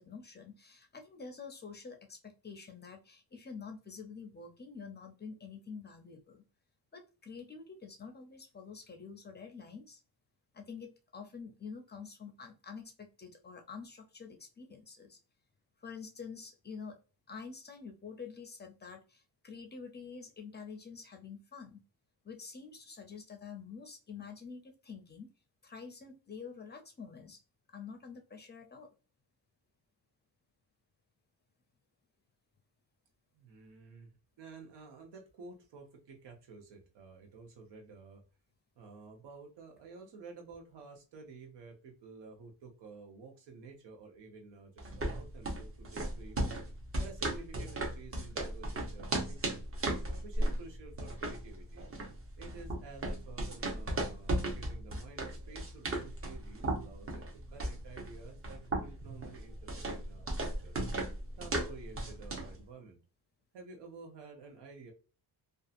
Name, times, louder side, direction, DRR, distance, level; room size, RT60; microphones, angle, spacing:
voice 1, 0.0-6.4 6.9-10.0 10.5-15.2 15.8-17.0 17.3-21.8 22.2-25.3 25.6-27.4 27.7-28.9, left 5 dB, 25° left, 4 dB, 0.5 m, -47 dB
voice 2, 33.3-38.2 38.8-46.5 47.0-49.6 50.0-51.8 52.4-57.2 57.5-60.7 61.4-63.0 63.5-64.9, right 4 dB, 85° right, 2 dB, 1.0 m, -51 dB
sound 1, 44.8-62.6, right 1 dB, 35° right, 0.7 m, -36 dB
2.7 x 2.3 x 2.4 m, 0.35 s
cardioid pair, 130°, 41 cm